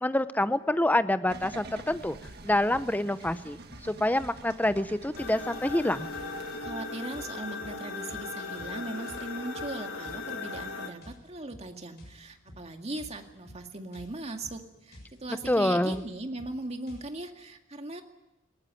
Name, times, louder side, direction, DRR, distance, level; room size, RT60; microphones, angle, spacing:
voice 1, 0.0-2.2 2.4-3.6 3.8-6.1 15.5-16.0, left 1 dB, 10° left, 13 dB, 0.7 m, -26 dB
sound 1, 1.3-6.6, right 2 dB, 55° right, 1.8 m, -47 dB
sound 2, 2.2-17.1, left 1 dB, 55° left, 7.3 m, -52 dB
sound 3, 5.2-10.9, left 3 dB, 90° left, 2.5 m, -38 dB
voice 2, 6.5-18.0, right 2 dB, 30° right, 5 dB, 2.1 m, -39 dB
20.0 x 18.5 x 9.1 m, 0.95 s
head